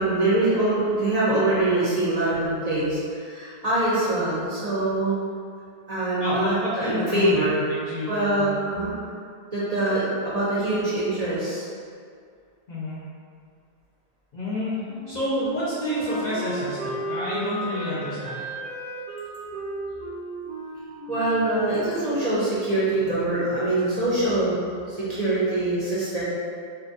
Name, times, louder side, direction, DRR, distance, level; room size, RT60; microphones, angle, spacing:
voice 1, 0.0-5.2 5.9-7.6 8.1-8.9 9.5-11.6 21.1-24.6 24.9-26.2, right 2 dB, 50° right, -10 dB, 0.5 m, -24 dB
voice 2, 6.2-8.4 12.7-13.0 14.3-14.7 15.1-18.5, left 1 dB, 55° left, -9 dB, 0.6 m, -29 dB
Wind instrument woodwind instrument, 14.8-22.4, right 2 dB, 5° left, 0.6 m, -34 dB
2.5 x 2.1 x 2.6 m, 2.2 s
omnidirectional pair, 1.1 m